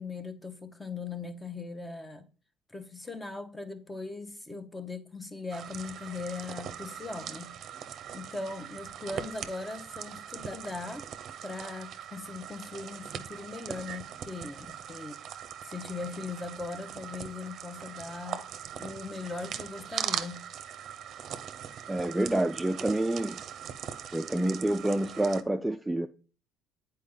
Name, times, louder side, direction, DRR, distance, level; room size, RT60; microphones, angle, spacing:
voice 1, 0.0-2.3 2.7-7.6 8.1-11.1 11.4-15.1 15.6-18.4 18.8-20.5, left 3 dB, 15° left, 0.8 m, -39 dB
sound 1, 5.5-25.4, right 9 dB, 55° right, 0.6 m, -41 dB
voice 2, 21.9-23.4 24.1-26.1, right 1 dB, 10° right, 0.3 m, -28 dB
8.4 x 4.4 x 3.6 m
supercardioid pair, 95°, 0 cm